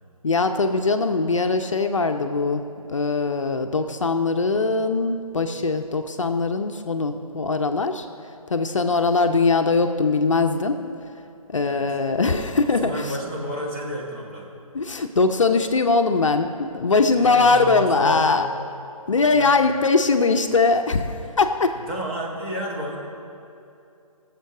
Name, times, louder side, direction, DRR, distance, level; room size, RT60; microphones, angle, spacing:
voice 1, 0.2-2.6 2.9-8.1 8.5-10.8 11.5-13.2 14.7-18.5 19.1-21.8, left 3 dB, 60° left, 6 dB, 0.7 m, -21 dB
voice 2, 11.6-11.9 12.6-14.5 17.1-18.3 19.3-19.6 21.7-23.0, equal, 20° right, -4 dB, 2.0 m, -31 dB
22.5 x 7.6 x 3.6 m, 2.6 s
figure-of-eight pair, 145°, 19 cm